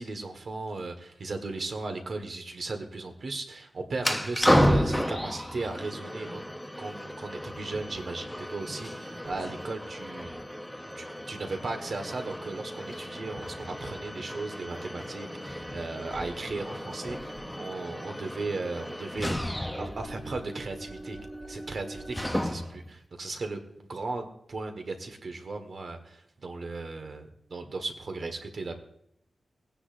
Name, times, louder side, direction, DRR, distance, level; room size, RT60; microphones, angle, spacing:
voice 1, 0.0-6.4 6.8-10.3 11.0-21.2 21.5-28.7, right 3 dB, 50° right, 5 dB, 1.4 m, -36 dB
sound 1, 4.0-22.9, equal, 5° left, 0.7 m, -32 dB
19.0 x 9.8 x 2.6 m, 0.74 s
wide cardioid pair, 165°, 0 cm